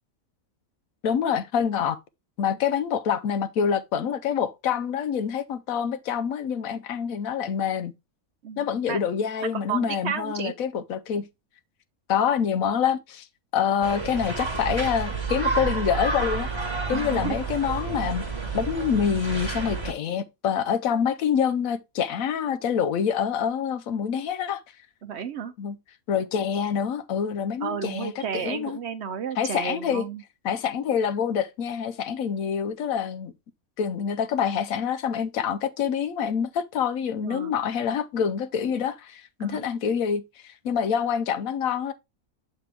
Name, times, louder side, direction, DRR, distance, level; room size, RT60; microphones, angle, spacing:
voice 1, 1.0-2.0 2.4-7.9 8.6-11.3 12.1-13.3 13.5-16.5 16.9-18.2 18.5-24.6 25.6-25.8 26.1-28.8 29.4-30.0 30.4-33.3 33.8-41.9, left 7 dB, 75° left, 1.1 m, -26 dB
voice 2, 8.4-9.0 9.4-10.5 16.9-17.4 25.0-25.5 27.6-30.2 37.2-37.5 39.4-39.7, right 7 dB, 60° right, 0.8 m, -32 dB
sound 1, 13.8-19.9, right 4 dB, 20° right, 1.2 m, -30 dB
7.2 x 4.3 x 3.4 m
omnidirectional pair, 1.5 m